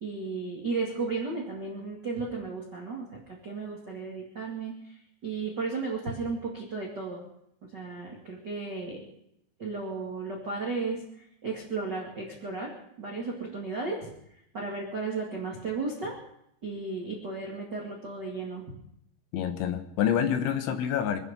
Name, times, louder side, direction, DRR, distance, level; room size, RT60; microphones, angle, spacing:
voice 1, 0.0-4.7 5.2-7.2 7.7-9.1 9.6-11.0 11.4-12.7 13.0-14.1 14.5-16.2 16.6-18.6, right 4 dB, 65° right, -2 dB, 1.0 m, -34 dB
voice 2, 19.3-21.2, left 9 dB, 75° left, 8 dB, 3.1 m, -27 dB
25.5 x 9.3 x 5.6 m, 0.76 s
omnidirectional pair, 6.0 m